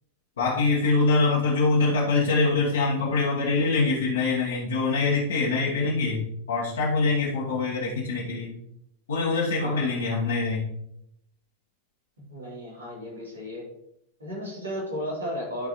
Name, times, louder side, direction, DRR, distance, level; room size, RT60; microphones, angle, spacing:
voice 1, 0.4-8.5 9.1-10.7, left 3 dB, 65° left, -5 dB, 1.3 m, -24 dB
voice 2, 9.5-10.0 12.2-13.6 14.2-15.7, equal, 75° right, -4 dB, 3.2 m, -34 dB
11.5 x 4.8 x 3.1 m, 0.77 s
figure-of-eight pair, 90°, 0 cm